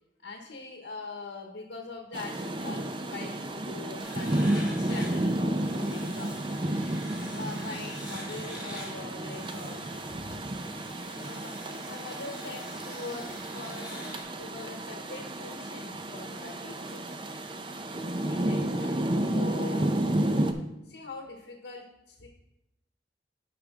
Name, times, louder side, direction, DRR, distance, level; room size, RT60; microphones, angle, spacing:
voice 1, 0.2-6.4 6.9-7.0 7.3-10.4 11.1-17.1 18.2-20.4 20.9-22.3, left 3 dB, 75° left, 2 dB, 1.0 m, -43 dB
Rain, 2.1-20.5, right 1 dB, 30° right, 0.5 m, -32 dB
sound 1, 4.0-14.2, equal, 5° right, 2.1 m, -46 dB
11.0 x 5.0 x 3.6 m, 0.87 s
head